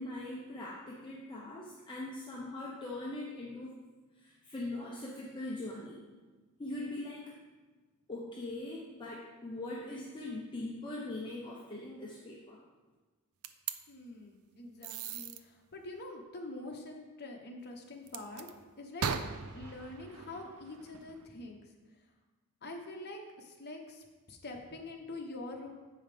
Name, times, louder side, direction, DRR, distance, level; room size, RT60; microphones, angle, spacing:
voice 1, 0.0-3.8 4.2-6.0 6.6-7.3 8.1-12.6, left 2 dB, 20° left, -5 dB, 0.9 m, -41 dB
sound 1, 13.4-13.8 14.8-15.4 18.1-18.5 19.0-21.2, right 6 dB, 70° right, 0.5 m, -39 dB
voice 2, 13.9-19.2 19.5-21.7 22.6-25.8, left 2 dB, 50° left, 2 dB, 1.1 m, -45 dB
7.7 x 5.5 x 5.2 m, 1.3 s
head